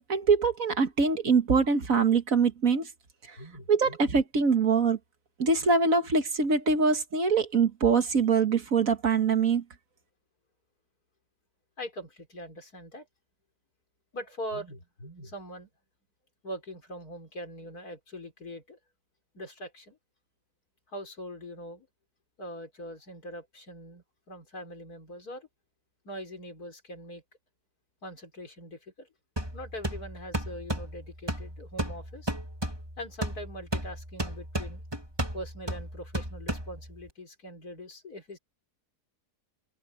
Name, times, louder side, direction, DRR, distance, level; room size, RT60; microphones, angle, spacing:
voice 1, 0.0-2.9 3.3-3.4 3.7-5.0 5.4-9.6, right 5 dB, 55° right, 1.9 m, -24 dB
voice 2, 3.4-4.0 11.8-13.1 14.1-15.7 16.4-18.8 19.3-20.0 20.9-21.9 22.4-25.5 26.0-27.2 28.0-29.1 29.5-32.3 33.0-34.8 35.3-38.4, equal, 65° left, 5.3 m, -42 dB
sound 1, 29.4-37.1, right 1 dB, 15° right, 2.4 m, -35 dB
open air
omnidirectional pair, 1.7 m